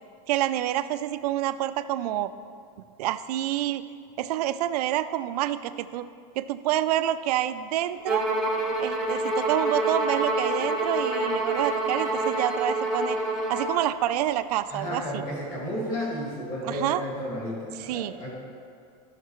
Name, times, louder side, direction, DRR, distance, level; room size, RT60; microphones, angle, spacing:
voice 1, 0.3-2.3 3.0-3.8 4.2-6.1 6.4-8.3 8.8-13.2 13.5-15.2 16.6-17.0 17.8-18.1, right 13 dB, 80° right, 12 dB, 0.4 m, -28 dB
Bowed string instrument, 8.1-13.8, right 2 dB, ahead, 0.6 m, -27 dB
voice 2, 14.7-18.3, equal, 40° left, -3 dB, 2.2 m, -32 dB
12.5 x 6.5 x 3.1 m, 2.3 s
supercardioid pair, 180°, 20 cm